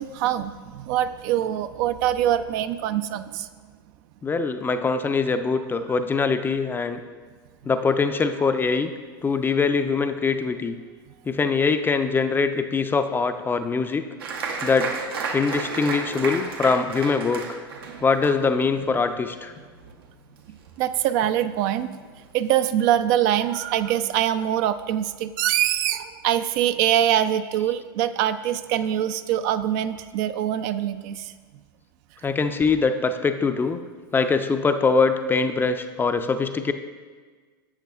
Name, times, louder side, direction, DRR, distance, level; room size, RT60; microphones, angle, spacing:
voice 1, 0.0-3.5 20.5-21.9 22.3-31.3, right 11 dB, 55° right, 11 dB, 0.4 m, -24 dB
voice 2, 4.2-7.0 7.6-8.9 9.2-10.7 11.3-14.0 14.6-14.9 15.3-17.6 18.0-19.5 32.2-33.8 34.1-36.7, left 4 dB, 15° left, 8 dB, 0.4 m, -23 dB
Applause, 14.2-21.3 21.5-22.3 22.7-22.8 23.1-23.5, right 4 dB, 75° right, 0.9 m, -33 dB
10.5 x 7.5 x 2.4 m, 1.5 s
hypercardioid pair, 95°, 13 cm